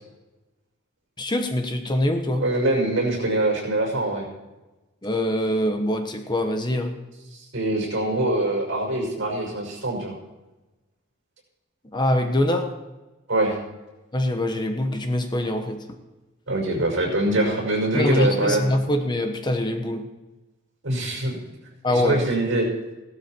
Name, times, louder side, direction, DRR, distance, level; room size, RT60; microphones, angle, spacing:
voice 1, 1.2-2.5 5.0-7.0 11.9-12.7 14.1-15.8 17.9-20.0 21.8-22.3, left 1 dB, 20° left, 6 dB, 1.1 m, -24 dB
voice 2, 2.4-4.2 7.3-10.1 13.3-13.6 16.5-18.7 20.8-21.4 21.9-22.7, right 1 dB, 65° right, 0 dB, 5.8 m, -24 dB
16.5 x 12.5 x 4.5 m, 1.1 s
head